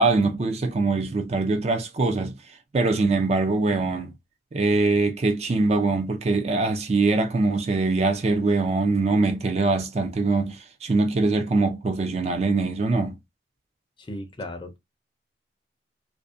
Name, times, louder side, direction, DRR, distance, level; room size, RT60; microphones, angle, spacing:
voice 1, 0.0-2.3 2.7-4.1 4.5-13.1, right 3 dB, 35° right, 0.4 m, -23 dB
voice 2, 14.0-14.8, left 1 dB, 25° left, 0.5 m, -36 dB
2.5 x 2.1 x 2.4 m
head